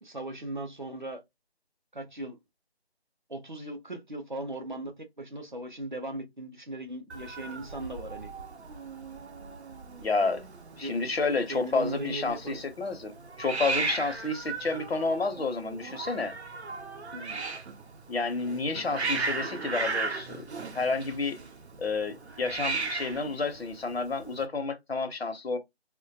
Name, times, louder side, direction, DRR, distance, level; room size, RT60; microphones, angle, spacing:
voice 1, 0.0-1.2 1.9-2.4 3.3-8.3 10.8-11.0 11.5-12.6 17.1-17.4, right 1 dB, 50° right, 0.5 m, -38 dB
Hiss, 7.1-24.4, right 4 dB, 85° right, 0.6 m, -37 dB
voice 2, 10.0-10.4 10.8-13.1 13.4-16.3 18.1-21.4 21.8-25.6, left 3 dB, 70° left, 0.7 m, -30 dB
2.3 x 2.1 x 2.5 m
figure-of-eight pair, 175°, 32 cm